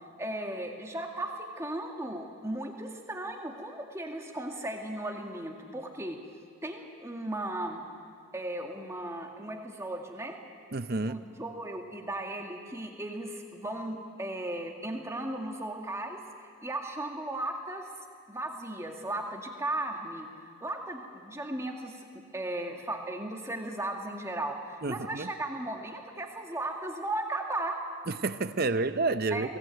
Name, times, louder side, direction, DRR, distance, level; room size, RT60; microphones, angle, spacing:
voice 1, 0.2-6.2 6.6-7.8 8.3-10.4 10.9-16.2 16.6-17.9 18.3-20.3 20.6-27.8 29.3-29.5, right 1 dB, 15° right, 2 dB, 2.0 m, -36 dB
voice 2, 10.7-11.2 24.8-25.3 28.1-29.6, right 3 dB, 45° right, 12 dB, 0.7 m, -29 dB
22.5 x 17.5 x 9.1 m, 2.2 s
head